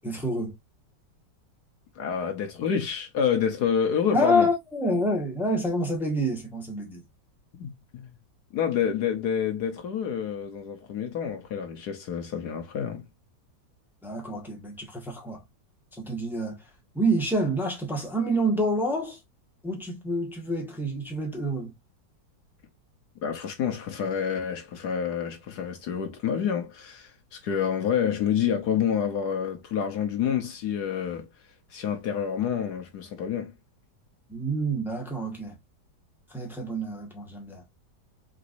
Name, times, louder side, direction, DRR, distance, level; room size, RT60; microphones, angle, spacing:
voice 1, 0.0-0.5 4.1-7.0 14.0-15.4 15.9-16.7 16.9-19.2 19.6-21.7 34.3-35.5 36.3-37.6, equal, ahead, 1.4 m, -28 dB
voice 2, 1.9-4.5 7.6-8.1 8.5-13.0 23.2-31.3 31.7-33.5, left 8 dB, 65° left, 1.4 m, -28 dB
4.6 x 3.9 x 2.6 m
omnidirectional pair, 1.9 m